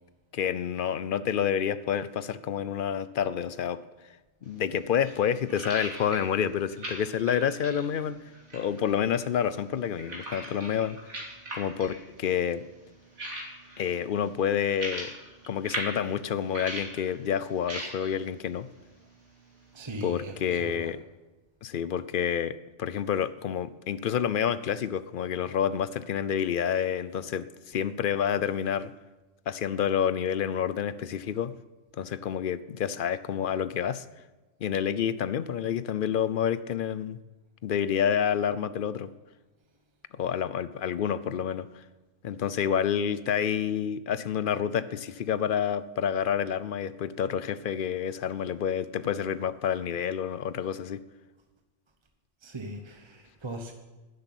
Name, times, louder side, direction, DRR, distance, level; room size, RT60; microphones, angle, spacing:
voice 1, 0.3-3.8 4.4-8.2 8.5-11.0 11.5-12.6 13.8-15.1 15.5-18.7 20.0-21.0 21.6-28.9 29.5-31.5 32.0-34.1 34.6-37.2 37.6-39.1 40.1-41.8 42.2-51.0, left 8 dB, 55° left, 16 dB, 0.6 m, -28 dB
sound 1, 4.4-20.2, right 1 dB, 80° right, 3.3 m, -42 dB
voice 2, 19.7-20.9 52.4-53.7, right 1 dB, 25° right, 4 dB, 1.0 m, -39 dB
12.0 x 8.0 x 9.9 m, 1.2 s
omnidirectional pair, 1.2 m